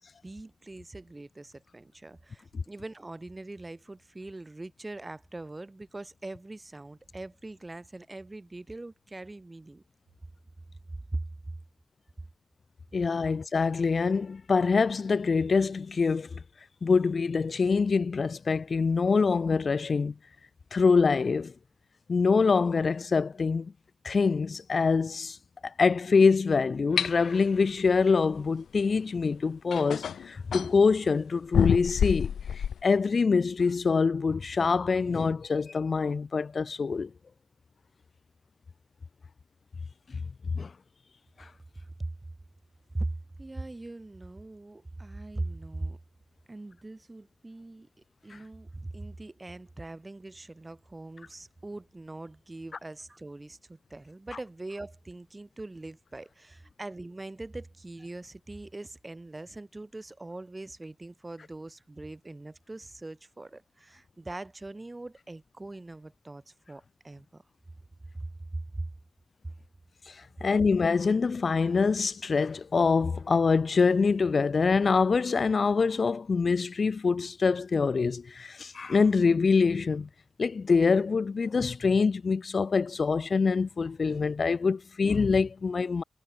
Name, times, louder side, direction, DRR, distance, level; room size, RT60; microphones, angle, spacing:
voice 1, 0.0-9.8 11.1-11.3 41.8-42.1 42.9-46.0 46.5-47.9 48.2-67.4 68.1-68.9, right 2 dB, 25° right, 4.5 m, -41 dB
voice 2, 12.9-16.4 16.8-20.1 20.7-21.5 22.1-23.7 24.0-25.4 25.6-37.1 40.5-40.7 41.4-41.5 48.3-48.4 70.1-80.1 80.4-86.0, left 4 dB, 50° left, 0.7 m, -25 dB
sound 1, 27.0-27.1 29.0-29.1 29.7-30.7 31.5-32.8, left 8 dB, 90° left, 0.5 m, -27 dB
cardioid pair, 75°, 0 cm